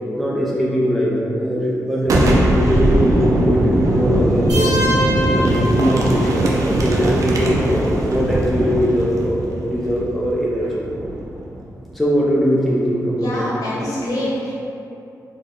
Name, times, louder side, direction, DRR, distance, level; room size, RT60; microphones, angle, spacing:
voice 1, 0.2-4.7 5.1-10.9 11.9-13.5, equal, ahead, -5 dB, 0.4 m, -21 dB
Boom, 2.0-11.6, right 1 dB, 60° right, 0.5 m, -20 dB
sound 1, 4.5-6.5, equal, 85° right, 1.2 m, -24 dB
voice 2, 13.2-14.5, left 1 dB, 65° left, -7 dB, 0.9 m, -25 dB
3.9 x 2.0 x 3.5 m, 2.7 s
wide cardioid pair, 150°, 6 cm